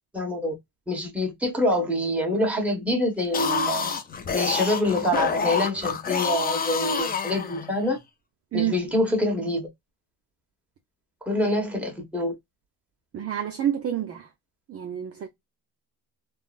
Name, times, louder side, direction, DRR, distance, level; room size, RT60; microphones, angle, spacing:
voice 1, 0.1-0.5 0.9-3.9 4.3-8.0 8.5-9.7 11.2-12.3, left 1 dB, 5° right, 1.1 m, -25 dB
sound 1, 3.2-7.9, left 6 dB, 25° left, 0.4 m, -28 dB
voice 2, 13.1-14.3 14.7-15.3, right 10 dB, 40° right, 0.4 m, -28 dB
3.7 x 2.0 x 2.3 m
cardioid pair, 140°, 40 cm